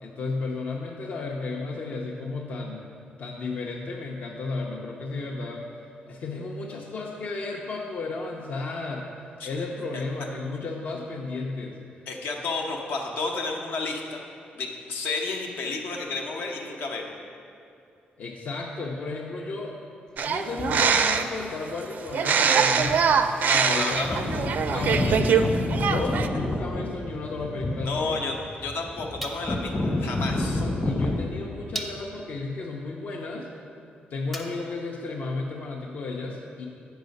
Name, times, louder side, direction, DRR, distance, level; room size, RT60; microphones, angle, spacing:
voice 1, 0.0-2.9 3.2-5.7 6.1-9.1 9.4-11.8 18.2-19.7 20.2-23.1 23.5-24.2 24.7-25.5 25.8-28.2 30.5-33.5 34.1-36.6, left 3 dB, 50° left, -1 dB, 0.6 m, -33 dB
voice 2, 12.1-14.2 14.5-17.1 23.4-24.2 27.8-28.3 28.6-30.6, left 3 dB, 75° left, 1 dB, 0.9 m, -31 dB
sound 1, 20.2-21.4 22.1-25.4 25.7-26.3, right 6 dB, 55° right, 0.4 m, -23 dB
sound 2, 20.6-21.0 22.1-22.2 22.8-23.2 23.5-23.6 23.8-31.2, left 2 dB, 25° left, 1.1 m, -29 dB
sound 3, 29.2-29.8 30.8-30.9 31.7-32.3 34.3-34.9, right 1 dB, 5° left, 0.6 m, -38 dB
8.0 x 5.7 x 5.2 m, 2.5 s
cardioid pair, 145°, 4 cm